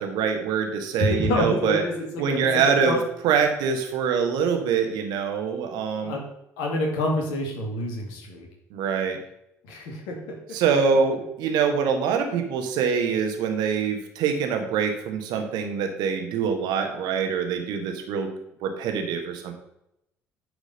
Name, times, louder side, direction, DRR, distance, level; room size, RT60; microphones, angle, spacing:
voice 1, 0.0-1.8 2.2-3.0 3.2-6.1 8.7-9.2 10.5-18.3 18.6-19.5, right 6 dB, 60° right, 5 dB, 1.4 m, -24 dB
voice 2, 1.0-3.0 5.9-6.2 6.6-8.5 9.6-10.6, left 1 dB, 65° left, 1 dB, 2.2 m, -28 dB
10.5 x 4.9 x 5.4 m, 0.80 s
figure-of-eight pair, 50°, 8 cm